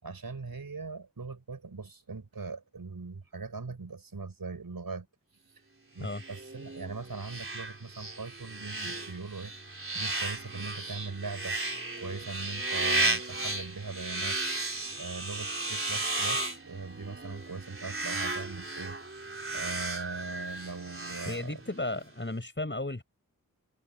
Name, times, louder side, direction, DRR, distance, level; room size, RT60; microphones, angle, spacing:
voice 1, 0.0-5.1 5.9-9.5 9.9-11.6 12.0-14.4 15.0-19.0 19.5-21.6, right 4 dB, 80° right, 6.1 m, -40 dB
sound 1, 6.0-22.0, right 2 dB, 40° right, 4.0 m, -34 dB
voice 2, 21.3-23.0, left 2 dB, 35° left, 6.6 m, -34 dB
wide cardioid pair, 45°, 35 cm